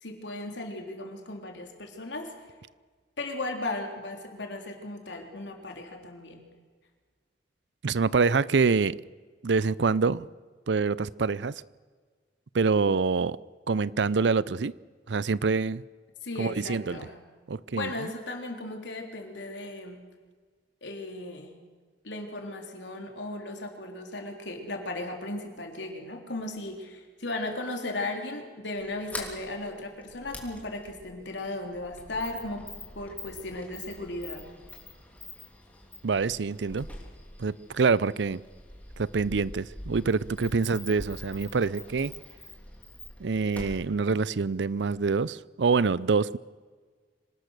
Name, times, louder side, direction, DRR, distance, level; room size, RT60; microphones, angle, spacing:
voice 1, 0.0-2.3 3.2-6.4 16.2-17.2 17.7-20.0 20.8-21.5 22.0-32.7 33.0-34.4, left 2 dB, 85° left, 3.7 m, -36 dB
voice 2, 7.8-9.0 9.4-10.3 10.7-11.6 12.5-13.4 13.7-14.7 15.1-15.8 16.4-17.0 17.5-18.1 36.0-36.9 37.4-38.4 39.0-42.1 43.2-46.4, right 4 dB, 85° right, 0.6 m, -26 dB
Sliding door, 28.8-45.2, left 1 dB, 10° left, 3.3 m, -45 dB
26.0 x 18.5 x 6.6 m
head